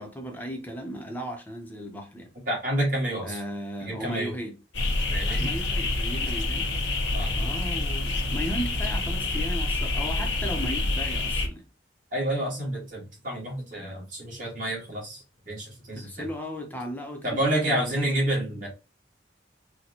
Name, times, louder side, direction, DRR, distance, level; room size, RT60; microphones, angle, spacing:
voice 1, 0.0-2.3 3.2-4.5 5.3-6.7 7.3-11.6 15.9-18.2, equal, 10° left, 0.7 m, -36 dB
voice 2, 2.5-3.4 3.8-4.3 5.1-5.5 7.1-7.4 12.1-16.3 17.2-18.7, right 1 dB, 45° right, 1.8 m, -29 dB
sound 1, 4.7-11.5, left 2 dB, 85° left, 0.9 m, -27 dB
4.3 x 2.2 x 2.8 m
head